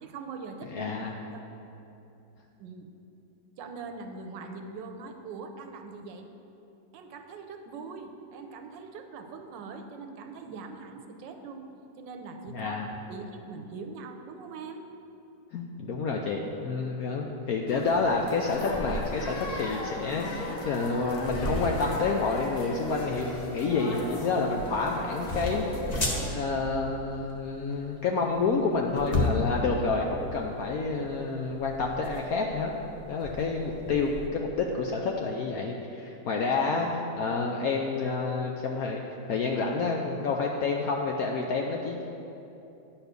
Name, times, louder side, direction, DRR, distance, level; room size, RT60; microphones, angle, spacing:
voice 1, 0.0-0.9 1.3-1.4 2.6-2.9 3.6-6.3 6.9-11.7 12.0-12.8 13.1-14.9, right 4 dB, 75° right, 5 dB, 1.3 m, -42 dB
voice 2, 0.7-1.1 12.5-12.9 15.5-25.7 26.3-32.7 33.0-39.0 39.3-42.1, left 4 dB, 75° left, 1 dB, 0.8 m, -29 dB
sound 1, 17.7-26.3, left 2 dB, 55° left, 1.4 m, -38 dB
sound 2, 18.5-34.3, left 1 dB, 30° left, 0.7 m, -35 dB
10.0 x 4.3 x 6.7 m, 2.9 s
omnidirectional pair, 2.1 m